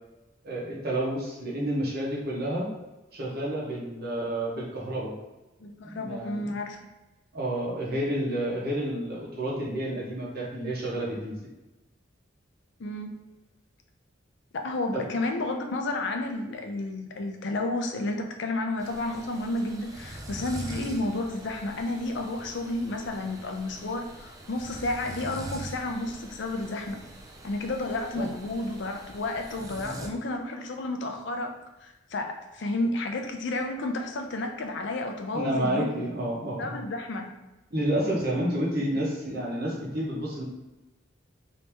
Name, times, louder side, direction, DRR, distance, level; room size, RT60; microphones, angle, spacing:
voice 1, 0.4-2.7 3.1-5.1 5.8-6.4 7.3-11.3 14.9-15.0 28.2-28.3 35.3-36.8 37.7-40.4, right 1 dB, 55° right, -4 dB, 0.9 m, -30 dB
voice 2, 5.6-6.8 12.8-13.1 14.5-27.0 27.4-31.5 31.8-35.9 36.4-37.3, left 2 dB, 65° left, 4 dB, 0.5 m, -31 dB
sound 1, 18.8-30.1, right 1 dB, 20° right, 0.4 m, -43 dB
2.9 x 2.7 x 3.3 m, 1.0 s
head